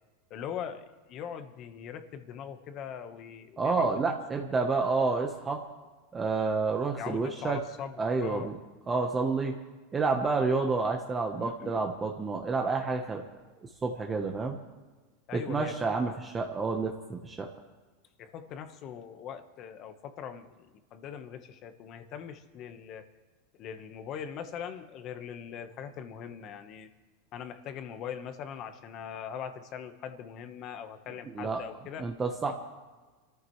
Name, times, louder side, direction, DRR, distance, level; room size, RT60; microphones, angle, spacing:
voice 1, 0.3-4.2 7.0-8.5 11.4-11.9 15.3-15.8 16.0-16.1 18.2-20.7 20.9-23.1 23.6-26.9 27.3-32.1, left 8 dB, 35° left, 8 dB, 1.3 m, -41 dB
voice 2, 3.6-5.6 6.1-7.6 8.0-8.5 8.9-9.5 9.9-13.2 13.6-14.6 15.3-17.5 31.3-31.6 32.0-32.5, right 4 dB, 15° right, 2 dB, 1.1 m, -29 dB
27.5 x 14.5 x 3.2 m, 1.3 s
supercardioid pair, 155°, 0 cm